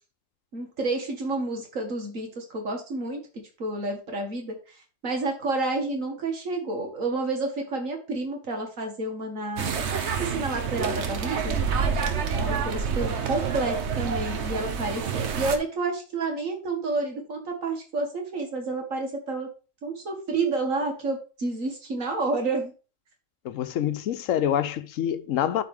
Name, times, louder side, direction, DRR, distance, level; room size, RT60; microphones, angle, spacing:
voice 1, 0.5-4.8 5.0-9.8 10.2-11.6 12.3-19.5 19.8-22.7, right 3 dB, 80° right, 2.2 m, -30 dB
sound 1, 9.6-15.6, right 6 dB, 60° right, 1.1 m, -28 dB
voice 2, 23.4-25.6, left 10 dB, 80° left, 1.0 m, -26 dB
11.5 x 4.2 x 3.5 m
omnidirectional pair, 1.4 m